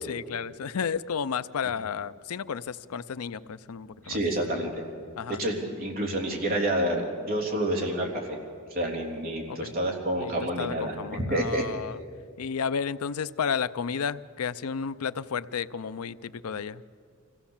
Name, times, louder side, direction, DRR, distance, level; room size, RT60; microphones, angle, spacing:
voice 1, 0.0-4.2 5.2-5.4 9.5-9.7 10.2-10.3 10.6-12.0 12.4-16.8, left 6 dB, 90° left, 16 dB, 0.5 m, -32 dB
voice 2, 4.0-4.7 5.3-8.3 8.7-11.6, right 1 dB, 45° right, 0 dB, 3.4 m, -28 dB
25.0 x 16.5 x 7.2 m, 2.2 s
head